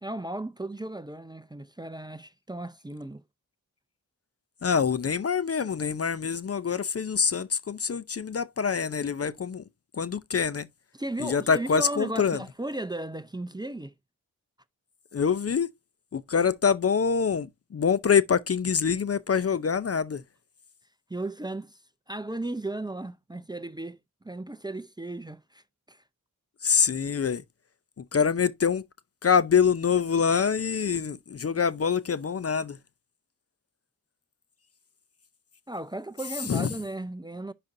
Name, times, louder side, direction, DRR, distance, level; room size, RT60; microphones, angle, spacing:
voice 1, 0.0-3.2 10.9-13.9 21.1-21.8 22.1-24.0 24.2-25.6 25.9-26.0 35.7-37.5, right 2 dB, 10° right, 0.6 m, -35 dB
voice 2, 4.6-9.6 10.0-10.7 11.2-12.4 15.1-15.7 16.1-17.5 17.7-20.2 26.6-27.4 28.1-28.8 29.2-32.8 36.5-36.7, left 6 dB, 40° left, 0.6 m, -25 dB
10.5 x 4.2 x 2.6 m
cardioid pair, 45°, 38 cm